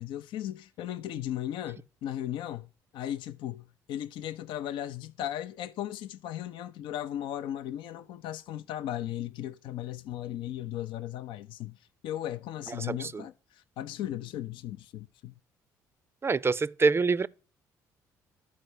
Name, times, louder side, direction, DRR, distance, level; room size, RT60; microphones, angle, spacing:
voice 1, 0.0-15.3, left 12 dB, 70° left, 0.5 m, -37 dB
voice 2, 12.8-13.3 16.2-17.3, right 4 dB, 30° right, 0.5 m, -26 dB
12.0 x 4.6 x 8.1 m
hypercardioid pair, 55°, 9 cm